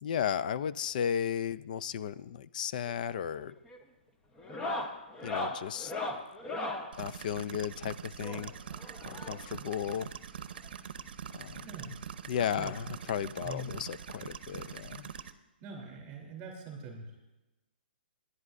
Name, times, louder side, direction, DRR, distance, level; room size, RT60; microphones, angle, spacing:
voice 1, 0.0-3.5 5.2-6.2 7.0-8.5 9.0-10.1 11.3-11.7 12.3-15.1, left 9 dB, 50° left, 16 dB, 0.5 m, -34 dB
sound 1, 2.8-3.2 3.5-3.8 4.4-6.9 8.2-9.6 10.6-10.7 10.9-11.1 11.5-11.6 12.9-13.0 14.3-14.4, left 2 dB, 15° left, 0.9 m, -38 dB
sound 2, 6.9-15.3, right 8 dB, 65° right, 0.8 m, -44 dB
voice 2, 11.5-12.0 12.6-12.8 13.4-13.7 15.6-17.3, right 2 dB, 25° right, 1 dB, 3.3 m, -44 dB
21.5 x 11.0 x 2.6 m, 1.0 s
hypercardioid pair, 155°, 6 cm